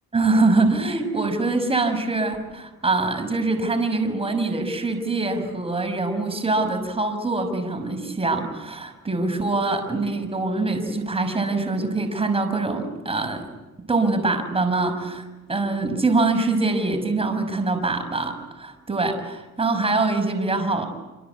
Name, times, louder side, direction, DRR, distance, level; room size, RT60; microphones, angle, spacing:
voice 1, 0.1-13.4 13.9-20.9, right 3 dB, 20° right, 6 dB, 5.9 m, -24 dB
26.5 x 26.5 x 8.2 m, 1.1 s
cardioid pair, 90°, 30 cm